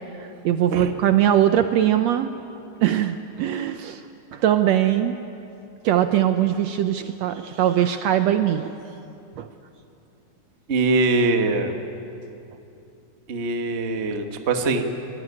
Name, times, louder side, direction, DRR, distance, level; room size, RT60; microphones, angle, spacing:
voice 1, 0.2-2.3 2.8-4.0 4.3-5.2 5.8-8.7 9.4-9.5, right 11 dB, 70° right, 8 dB, 1.7 m, -21 dB
voice 2, 10.7-11.7 13.3-14.8, right 3 dB, 35° right, 5 dB, 1.2 m, -22 dB
25.0 x 19.5 x 9.7 m, 2.7 s
omnidirectional pair, 3.5 m